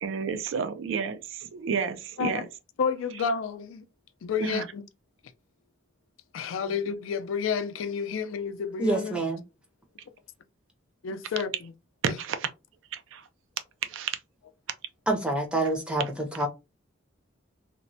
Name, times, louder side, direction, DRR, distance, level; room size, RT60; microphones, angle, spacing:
voice 1, 0.0-2.5 4.4-4.7 12.0-12.5 12.9-13.2 13.9-14.2, right 6 dB, 75° right, 0.4 m, -30 dB
voice 2, 2.8-3.8 4.2-4.8 6.3-9.2 11.0-11.7 12.0-12.2, left 6 dB, 80° left, 0.4 m, -30 dB
voice 3, 8.8-9.4 15.1-16.5, right 2 dB, 5° right, 0.5 m, -27 dB
3.0 x 2.1 x 2.6 m
head